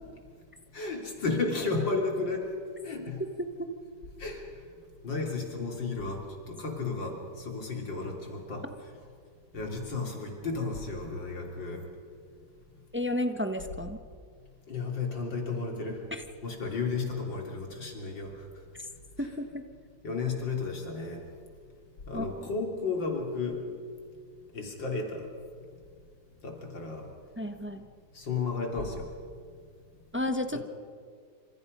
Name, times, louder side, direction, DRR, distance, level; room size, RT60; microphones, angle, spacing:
voice 1, 0.7-2.5 2.8-3.2 4.2-4.4 5.0-7.2 7.5-8.7 9.5-11.8 14.7-16.0 16.4-18.4 19.2-19.3 20.0-21.2 22.1-23.6 24.5-25.3 26.4-27.1 28.2-29.1 30.5-30.6, left 4 dB, 65° left, 1 dB, 4.1 m, -33 dB
voice 2, 12.9-14.0 16.1-16.2 18.8-18.9 19.2-19.6 22.1-22.3 27.4-27.9 30.1-30.6, left 1 dB, 10° right, 7 dB, 0.7 m, -32 dB
28.0 x 27.0 x 5.5 m, 2.1 s
omnidirectional pair, 2.2 m